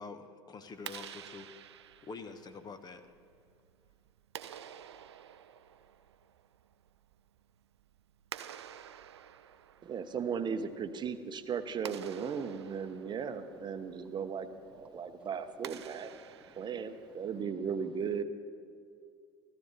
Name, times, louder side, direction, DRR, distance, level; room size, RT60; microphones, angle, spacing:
voice 1, 0.0-1.5 2.0-3.1, left 4 dB, 30° left, 9 dB, 1.0 m, -46 dB
Clapping, 0.7-17.4, right 10 dB, 85° right, 0.4 m, -50 dB
voice 2, 9.8-14.5 14.7-16.1 16.6-18.2, right 6 dB, 35° right, 9 dB, 0.9 m, -36 dB
voice 3, 14.6-15.3 15.9-16.7 17.0-17.3 17.5-17.7, right 2 dB, 10° right, 9 dB, 0.4 m, -62 dB
16.0 x 13.5 x 4.1 m, 2.4 s
hypercardioid pair, 75°, 14 cm